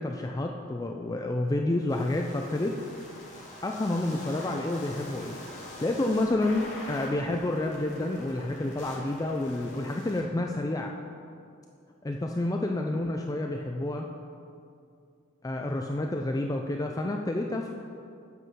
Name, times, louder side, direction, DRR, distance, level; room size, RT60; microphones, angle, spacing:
voice 1, 0.0-2.8 3.6-10.9 12.0-14.1 15.4-17.7, left 2 dB, 15° left, 2 dB, 0.3 m, -29 dB
sound 1, 1.9-10.2, left 1 dB, 35° left, 2.0 m, -44 dB
8.3 x 5.6 x 7.5 m, 2.4 s
head